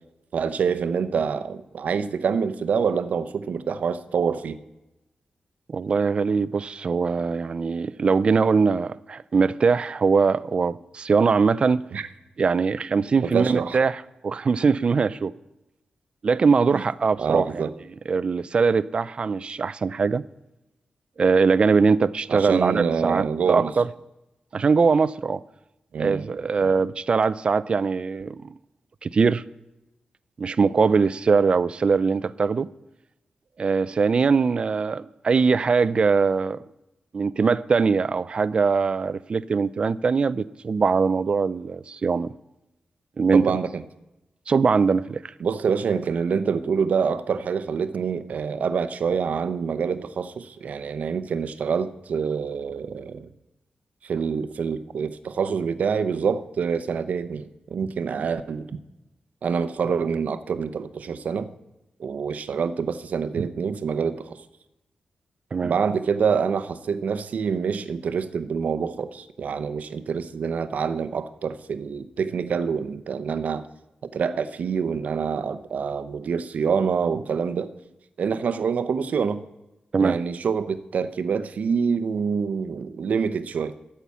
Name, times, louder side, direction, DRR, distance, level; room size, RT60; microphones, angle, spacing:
voice 1, 0.3-4.6 11.9-12.1 13.2-13.8 16.7-16.8 17.2-17.7 22.3-23.7 25.9-26.3 26.6-26.8 43.3-43.8 45.4-53.3 54.0-58.7 59.4-61.5 62.0-64.4 65.6-73.7 74.0-77.7 78.2-79.4 80.0-83.7, right 6 dB, 65° right, 0.7 m, -26 dB
voice 2, 5.7-11.8 12.4-15.3 16.2-17.7 18.1-20.2 21.2-23.9 24.5-25.4 26.0-28.5 29.0-29.4 30.4-32.7 33.6-36.6 37.1-42.3 43.2-43.5 44.5-45.2 65.5-65.7 79.9-80.2, right 5 dB, 40° right, 0.3 m, -21 dB
13.0 x 5.7 x 8.2 m
wide cardioid pair, 155°, 3 cm